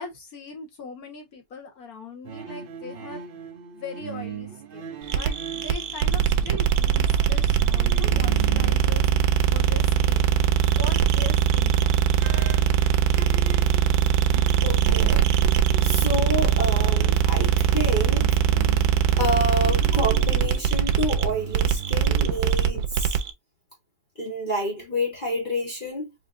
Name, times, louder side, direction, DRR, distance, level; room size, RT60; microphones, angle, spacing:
voice 1, 0.0-3.2 3.7-9.1 9.5-10.3 10.8-12.0 12.3-12.9, left 3 dB, 75° left, 1.9 m, -40 dB
sound 1, 2.2-9.8 10.1-11.6 12.2-22.0, right 8 dB, 55° right, 0.6 m, -39 dB
sound 2, 5.1-23.3, right 9 dB, 90° right, 1.2 m, -21 dB
voice 2, 14.6-15.2 15.8-18.3 19.2-23.2 24.2-26.1, left 1 dB, 35° left, 1.3 m, -28 dB
4.8 x 2.5 x 2.5 m
omnidirectional pair, 1.6 m